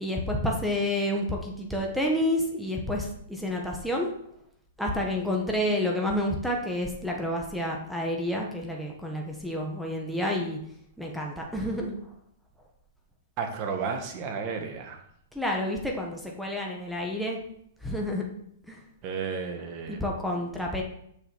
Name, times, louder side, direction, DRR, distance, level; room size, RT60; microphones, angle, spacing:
voice 1, 0.0-4.1 4.8-10.6 11.0-12.0 15.3-17.4 17.8-18.2 18.7-18.8 19.9-20.8, left 1 dB, ahead, -1 dB, 1.4 m, -29 dB
voice 2, 13.4-15.0 19.0-20.0, right 5 dB, 40° right, 4 dB, 1.8 m, -32 dB
6.8 x 5.4 x 6.3 m, 0.72 s
hypercardioid pair, 130°, 0 cm